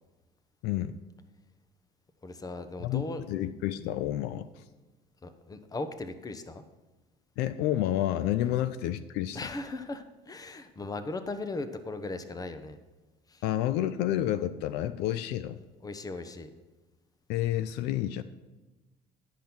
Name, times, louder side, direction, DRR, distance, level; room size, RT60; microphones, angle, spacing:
voice 1, 2.2-3.4 5.2-6.6 8.4-8.6 9.3-12.8 13.3-13.4 15.8-16.5, left 2 dB, 20° left, 10 dB, 0.9 m, -38 dB
voice 2, 2.8-4.5 7.4-9.4 13.4-15.6 17.3-18.2, left 12 dB, 75° left, 13 dB, 0.5 m, -29 dB
10.5 x 5.5 x 6.0 m, 1.1 s
supercardioid pair, 95°, 17 cm